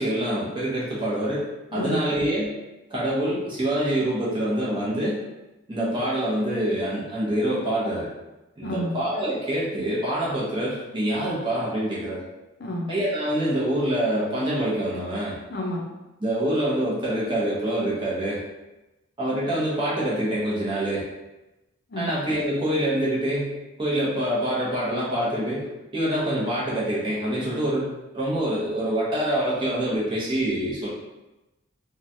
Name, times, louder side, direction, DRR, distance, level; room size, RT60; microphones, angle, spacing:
voice 1, 0.0-1.4 1.7-2.5 2.9-5.2 5.7-8.1 8.6-12.2 12.9-15.4 16.2-18.4 19.2-21.1 22.0-25.7 25.9-27.9 28.1-30.9, right 1 dB, 25° right, -7 dB, 0.8 m, -25 dB
voice 2, 1.7-2.0 8.6-8.9 12.6-12.9 15.5-15.8 21.9-22.1, equal, 50° left, -1 dB, 0.5 m, -29 dB
3.1 x 2.2 x 2.6 m, 1.0 s
head